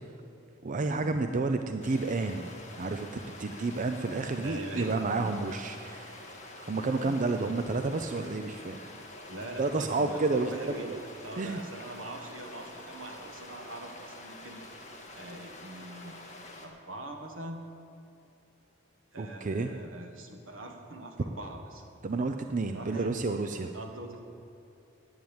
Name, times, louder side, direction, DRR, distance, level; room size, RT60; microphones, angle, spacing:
voice 1, 0.6-3.1 3.4-6.2 6.6-8.8 9.6-11.0 11.4-11.6 19.2-19.7 22.0-23.7, right 3 dB, 40° right, 7 dB, 0.5 m, -30 dB
sound 1, 1.8-16.7, left 1 dB, 35° left, 1.8 m, -47 dB
voice 2, 4.3-4.9 5.2-5.3 7.0-7.2 9.3-10.9 11.2-14.7 15.1-16.2 16.6-17.7 19.1-21.8 22.7-23.1 23.7-24.2, right 1 dB, 80° right, 3 dB, 1.6 m, -42 dB
11.0 x 8.8 x 8.8 m, 2.7 s
head